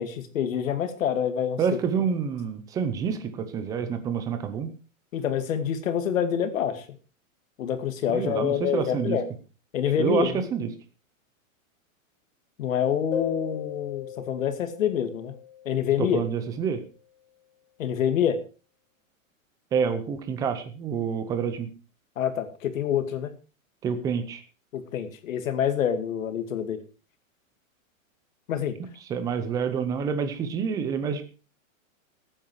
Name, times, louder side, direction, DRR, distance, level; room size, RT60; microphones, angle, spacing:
voice 1, 0.0-1.6 5.1-6.9 7.6-9.2 9.7-10.4 12.6-15.4 15.7-16.2 17.8-18.4 22.2-23.3 24.7-26.8 28.5-28.8, left 9 dB, 70° left, 10 dB, 2.3 m, -26 dB
voice 2, 1.6-4.7 8.1-9.2 10.0-10.7 16.0-16.8 19.7-21.7 23.8-24.4 29.1-31.2, right 7 dB, 10° right, 10 dB, 0.6 m, -28 dB
sound 1, 13.1-16.4, left 10 dB, 55° left, 6.3 m, -37 dB
14.5 x 9.0 x 4.8 m, 0.34 s
supercardioid pair, 170°, 41 cm